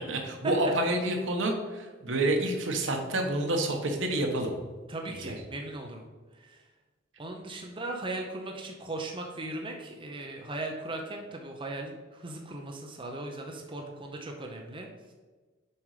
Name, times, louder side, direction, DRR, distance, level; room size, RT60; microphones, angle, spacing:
voice 1, 0.0-4.5 5.1-5.3, right 1 dB, 75° right, 3 dB, 1.2 m, -28 dB
voice 2, 4.9-6.1 6.3-6.6 7.2-14.9, right 2 dB, 25° right, 1 dB, 0.7 m, -38 dB
7.0 x 5.1 x 5.0 m, 1.3 s
head